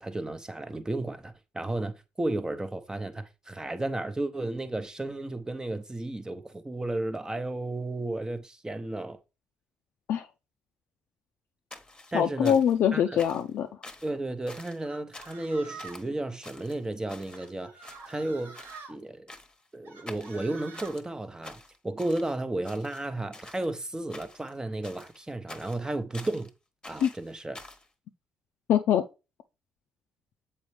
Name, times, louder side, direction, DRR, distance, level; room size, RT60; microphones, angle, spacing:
voice 1, 0.0-9.2 12.1-12.5 12.9-13.2 14.0-18.6 18.9-19.3 19.7-26.5 26.9-27.6, right 2 dB, 15° right, 0.7 m, -33 dB
sound 1, 11.7-12.8 13.2-13.5 13.8-14.1 14.5-14.8 15.1-15.5 15.8-16.1 16.4-17.5 17.8-18.3 18.5-18.9 19.3-19.7 20.1-21.0 21.4-22.4 22.6-23.7 24.1-24.5 24.8-26.5 26.8-27.9, left 2 dB, 20° left, 1.0 m, -47 dB
voice 2, 12.1-13.7 27.0-27.1 28.7-29.0, left 9 dB, 70° left, 0.4 m, -23 dB
sound 2, 14.8-16.1 17.3-18.9 19.8-21.0, right 4 dB, 75° right, 1.9 m, -46 dB
7.0 x 4.3 x 3.2 m
supercardioid pair, 65°, 4 cm